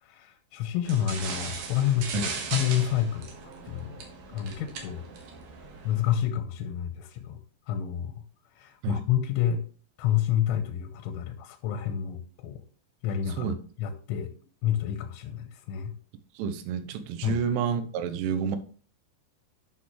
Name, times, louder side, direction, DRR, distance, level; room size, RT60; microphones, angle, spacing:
voice 1, 0.0-3.3 3.7-4.0 4.3-5.0 5.8-7.4 7.7-8.1 8.6-9.6 10.0-12.6 13.0-13.5 13.8-14.3 14.6-15.9 17.2-17.4, left 10 dB, 85° left, 7 dB, 3.1 m, -29 dB
sound 1, 0.8-6.1, right 5 dB, 65° right, 2.5 m, -38 dB
voice 2, 16.4-18.6, right 7 dB, 80° right, 10 dB, 3.1 m, -29 dB
11.0 x 6.2 x 3.1 m, 0.43 s
omnidirectional pair, 5.7 m